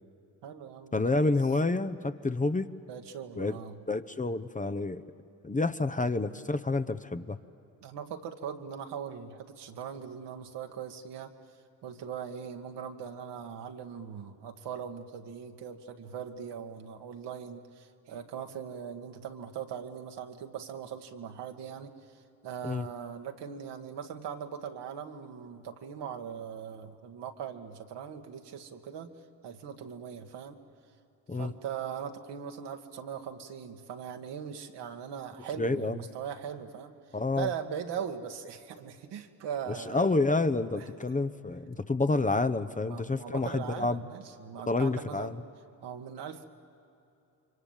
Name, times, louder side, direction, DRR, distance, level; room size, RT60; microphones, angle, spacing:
voice 1, 0.4-1.3 2.9-3.8 7.8-11.3 11.8-29.1 29.4-30.6 31.3-36.9 37.4-40.1 40.7-40.9 42.9-45.4 45.8-46.5, right 8 dB, 70° right, 4 dB, 1.8 m, -40 dB
voice 2, 0.9-2.7 3.4-3.6 3.9-5.0 5.4-7.4 22.6-22.9 31.3-31.5 35.6-36.0 37.1-37.5 39.9-44.0 44.7-45.4, left 3 dB, 20° left, 10 dB, 0.9 m, -29 dB
29.5 x 24.5 x 7.4 m, 2.8 s
supercardioid pair, 60°, 42 cm